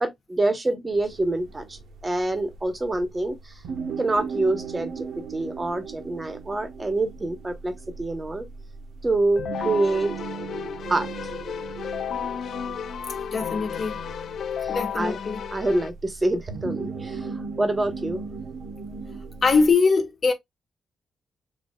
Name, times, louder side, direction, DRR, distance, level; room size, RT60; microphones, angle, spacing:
voice 1, 0.0-3.6 4.0-8.5 9.0-10.1 10.9-11.1 14.6-15.2 15.5-18.2, right 2 dB, 20° right, 1.0 m, -26 dB
sound 1, 0.9-19.7, right 5 dB, 85° right, 1.1 m, -38 dB
Keyboard (musical), 9.3-15.9, left 8 dB, 60° left, 0.3 m, -33 dB
voice 2, 13.3-14.0 14.7-15.4 19.4-20.3, left 4 dB, 35° left, 1.3 m, -22 dB
6.8 x 2.8 x 2.3 m
wide cardioid pair, 150°, 0 cm